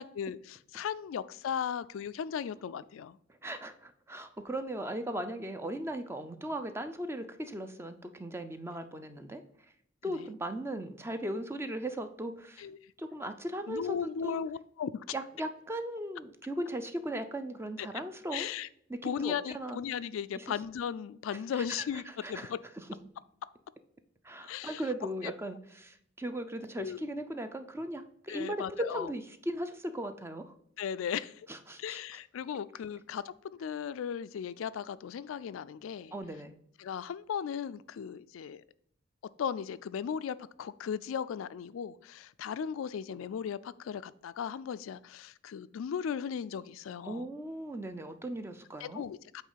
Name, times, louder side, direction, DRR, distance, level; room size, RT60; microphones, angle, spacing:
voice 1, 0.0-3.2 10.0-10.2 12.6-12.8 13.7-15.0 17.8-17.9 18.3-18.7 19.0-22.6 24.4-24.8 25.4-25.6 26.8-27.0 28.3-29.1 30.8-31.5 31.8-33.3 33.6-36.1 36.8-38.6 39.4-47.3 48.8-49.4, left 7 dB, 80° left, 15 dB, 0.3 m, -37 dB
voice 2, 3.4-9.4 10.0-12.7 13.0-14.0 14.2-14.4 15.1-18.5 18.9-19.8 20.3-20.5 21.7-21.8 22.2-22.5 24.2-30.5 31.5-32.0 36.1-36.5 47.0-49.0, right 1 dB, 15° right, 8 dB, 0.5 m, -38 dB
8.3 x 3.1 x 5.6 m, 0.69 s
head